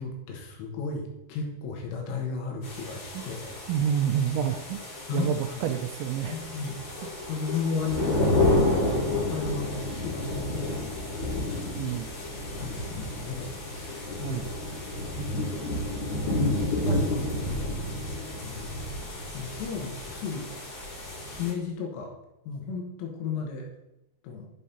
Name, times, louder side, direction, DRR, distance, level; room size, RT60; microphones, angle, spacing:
voice 1, 0.0-3.6 5.1-5.6 6.3-6.8 7.3-8.6 9.1-10.8 11.4-11.6 11.9-12.0 12.3-14.4 16.4-18.1 18.4-18.8 19.3-20.5 21.3-22.1 22.5-23.7 24.2-24.5, left 4 dB, 85° left, 1 dB, 3.8 m, -34 dB
sound 1, 2.6-21.5, left 2 dB, 40° left, 4.5 m, -30 dB
voice 2, 3.7-4.8 5.1-6.4 11.7-12.1 14.2-14.5, right 8 dB, 85° right, 7 dB, 2.6 m, -28 dB
11.0 x 5.6 x 4.2 m, 0.88 s
omnidirectional pair, 5.8 m